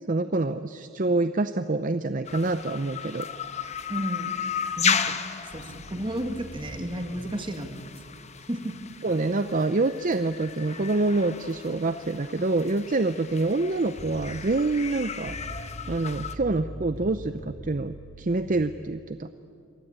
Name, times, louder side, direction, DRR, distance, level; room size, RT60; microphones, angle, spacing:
voice 1, 0.0-3.3 9.0-19.3, right 2 dB, 40° right, 11 dB, 0.6 m, -26 dB
sound 1, 2.3-16.4, left 7 dB, 30° left, 1.0 m, -34 dB
voice 2, 3.9-4.4 4.8-5.0 5.4-7.9 8.5-8.7, right 1 dB, 25° right, 6 dB, 1.8 m, -32 dB
sound 2, 5.5-7.2 14.0-18.5, right 1 dB, 60° right, 4.4 m, -42 dB
27.5 x 23.0 x 9.0 m, 2.4 s
head